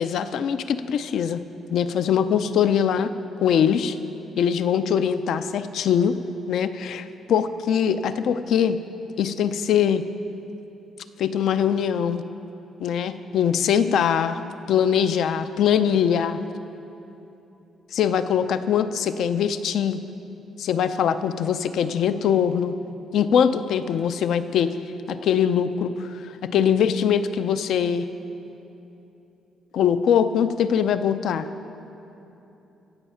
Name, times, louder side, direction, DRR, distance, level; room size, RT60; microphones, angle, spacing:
voice 1, 0.0-1.4 1.7-3.1 3.4-4.0 4.4-6.2 6.5-8.8 9.2-10.0 11.2-12.2 12.8-14.4 14.7-16.4 17.9-20.0 20.6-22.7 23.1-24.7 25.1-28.1 29.7-31.5, left 8 dB, 75° left, 11 dB, 0.5 m, -22 dB
16.0 x 7.2 x 5.6 m, 3.0 s
cardioid pair, 90°, 0 cm